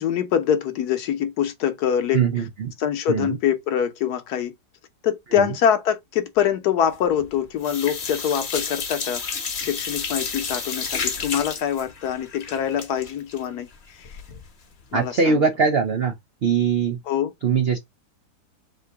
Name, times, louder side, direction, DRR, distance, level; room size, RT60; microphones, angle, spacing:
voice 1, 0.0-2.2 2.8-4.5 5.0-9.2 9.6-14.2 14.9-15.5 17.1-17.3, left 9 dB, 65° left, 1.1 m, -24 dB
voice 2, 2.1-2.7 3.1-3.4 5.3-5.5 14.9-16.1 16.4-17.0 17.4-17.8, right 5 dB, 80° right, 0.5 m, -21 dB
sound 1, 6.9-7.3 7.6-14.5 14.8-14.9 15.2-15.3, left 5 dB, 45° left, 0.9 m, -31 dB
3.8 x 2.6 x 4.5 m
omnidirectional pair, 1.9 m